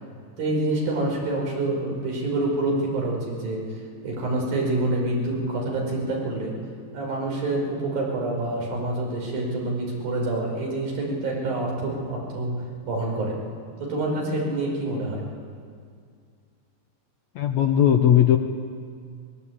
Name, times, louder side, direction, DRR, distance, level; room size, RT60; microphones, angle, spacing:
voice 1, 0.4-3.6 4.0-6.5 6.9-12.5 12.8-13.4 13.8-15.2, right 2 dB, 80° right, -1 dB, 6.7 m, -27 dB
voice 2, 17.4-18.4, left 10 dB, 70° left, 6 dB, 1.8 m, -18 dB
22.5 x 21.0 x 8.7 m, 2.2 s
omnidirectional pair, 4.1 m